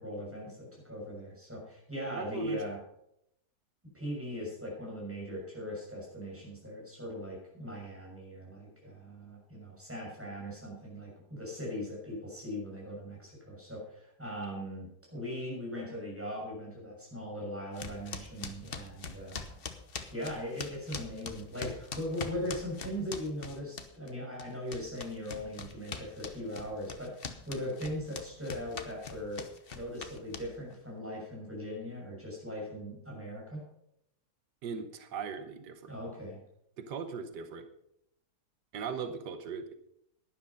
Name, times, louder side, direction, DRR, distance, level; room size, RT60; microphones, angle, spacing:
voice 1, 0.0-2.8 3.9-19.6 20.1-29.4 29.7-33.6 35.9-36.4, equal, 5° right, -3 dB, 6.4 m, -39 dB
voice 2, 2.1-2.6 34.6-35.9 36.8-37.7 38.7-39.7, right 6 dB, 90° right, 8 dB, 1.6 m, -39 dB
sound 1, 17.8-24.1 24.4-30.7, left 5 dB, 40° left, 1.1 m, -42 dB
12.0 x 10.5 x 5.6 m, 0.77 s
omnidirectional pair, 1.8 m